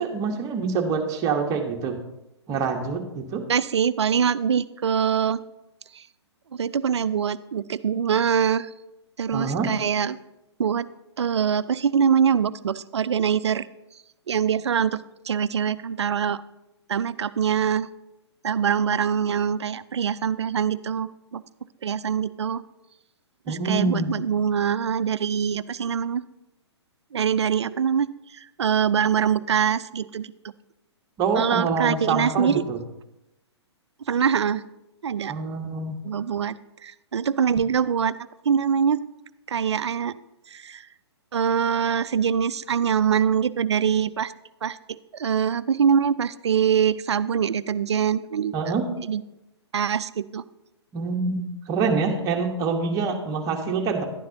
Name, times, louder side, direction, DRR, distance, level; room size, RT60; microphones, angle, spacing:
voice 1, 0.0-2.0 2.5-3.4 9.3-9.7 23.5-24.1 31.2-32.8 35.3-36.0 48.5-48.9 50.9-54.0, right 4 dB, 25° right, 3 dB, 1.1 m, -26 dB
voice 2, 3.5-5.4 6.0-6.1 6.5-8.7 9.2-10.2 10.6-10.9 11.2-13.7 14.3-15.0 15.3-16.4 16.9-17.9 18.4-21.4 21.8-22.6 23.5-26.2 27.1-28.1 28.6-30.3 31.3-32.6 34.1-34.6 35.0-35.3 36.0-36.6 36.8-38.2 38.5-39.0 39.5-40.1 40.5-40.8 41.3-44.3 44.6-48.5 49.1-49.2 49.7-50.4, right 7 dB, 70° right, 17 dB, 0.4 m, -23 dB
11.0 x 9.4 x 2.8 m, 0.93 s
figure-of-eight pair, 125°, 15 cm